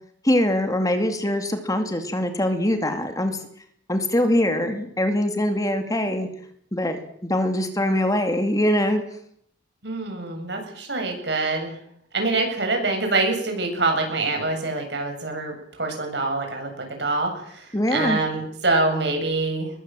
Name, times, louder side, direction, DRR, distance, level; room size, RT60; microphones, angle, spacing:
voice 1, 0.2-3.4 3.9-6.3 6.7-7.0 7.2-9.0 17.7-18.2, left 1 dB, 20° left, 7 dB, 2.5 m, -23 dB
voice 2, 9.8-11.8 12.1-19.7, right 3 dB, 65° right, 3 dB, 7.8 m, -25 dB
22.5 x 21.5 x 7.7 m, 0.68 s
head